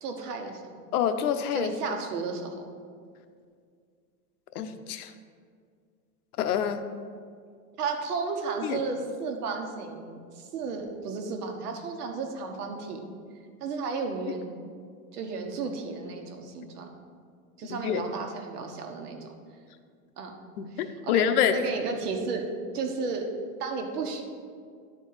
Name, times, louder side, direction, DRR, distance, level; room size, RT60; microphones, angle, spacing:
voice 1, 0.0-0.9 1.5-2.5 7.8-13.0 13.6-14.6 15.1-16.9 17.6-19.3 20.2-20.3 21.0-21.2 21.5-22.5 22.7-23.3 23.6-24.2, right 4 dB, 85° right, 4 dB, 1.4 m, -33 dB
voice 2, 0.9-1.7 4.5-5.1 6.4-6.8 8.6-8.8 17.7-18.0 20.6-21.6, left 9 dB, 80° left, 9 dB, 0.8 m, -26 dB
11.0 x 4.6 x 4.8 m, 2.1 s
supercardioid pair, 175°, 45 cm